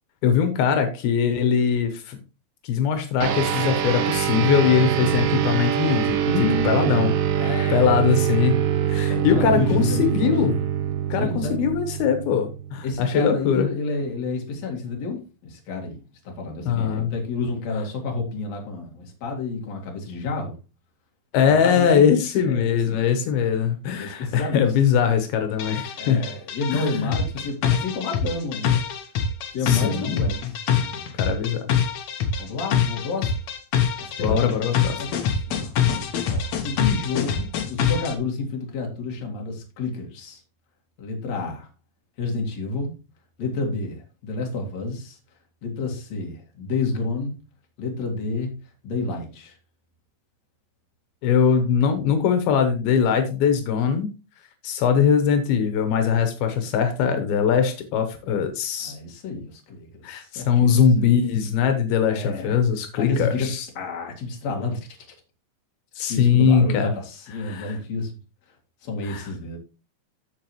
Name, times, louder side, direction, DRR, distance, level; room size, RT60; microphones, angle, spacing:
voice 1, 0.2-2.2 2.6-6.2 6.6-7.2 7.7-8.6 8.9-10.6 11.1-13.7 16.7-17.1 21.3-26.2 26.7-27.1 29.6-30.3 31.1-31.6 34.2-35.0 51.2-54.1 54.6-59.0 60.0-63.7 66.0-66.9 67.4-67.8 69.0-69.3, left 7 dB, 85° left, 7 dB, 3.0 m, -21 dB
sound 1, 3.2-13.0, right 9 dB, 70° right, 2.5 m, -24 dB
voice 2, 6.3-7.0 7.3-8.0 8.9-10.3 11.2-11.6 12.8-16.0 16.2-20.5 21.5-22.0 22.4-23.0 23.9-24.7 26.0-28.8 29.5-30.5 32.4-33.3 34.0-34.7 35.0-35.7 36.3-40.4 41.0-41.7 42.2-42.9 43.4-45.2 45.6-47.4 47.8-48.5 48.8-49.5 58.8-60.7 61.0-61.2 62.1-62.6 63.0-63.5 63.8-64.9 65.9-68.1 68.8-69.6, left 3 dB, 50° left, 1 dB, 3.1 m, -30 dB
sound 2, 25.6-38.2, left 7 dB, 65° left, 1.9 m, -25 dB
14.5 x 4.8 x 3.1 m, 0.31 s
omnidirectional pair, 4.3 m